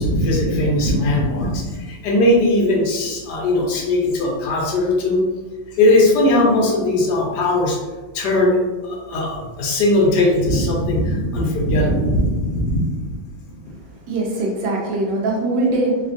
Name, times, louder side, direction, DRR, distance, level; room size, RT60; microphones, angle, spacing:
voice 1, 0.0-5.2 5.8-7.8 8.1-13.2, left 1 dB, 70° left, -2 dB, 1.1 m, -19 dB
voice 2, 13.9-16.0, right 2 dB, 70° right, -2 dB, 1.2 m, -22 dB
3.3 x 2.3 x 2.5 m, 1.3 s
omnidirectional pair, 2.1 m